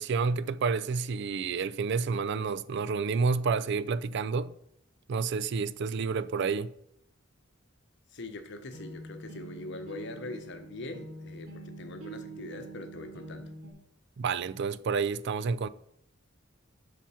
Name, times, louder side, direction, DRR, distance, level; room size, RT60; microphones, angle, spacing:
voice 1, 0.0-4.5 5.1-6.7 14.2-15.7, right 5 dB, 55° right, 0.4 m, -29 dB
voice 2, 8.1-13.5, left 2 dB, 60° left, 1.0 m, -42 dB
sound 1, 8.5-13.7, right 2 dB, 75° right, 2.9 m, -45 dB
7.4 x 5.8 x 5.6 m
head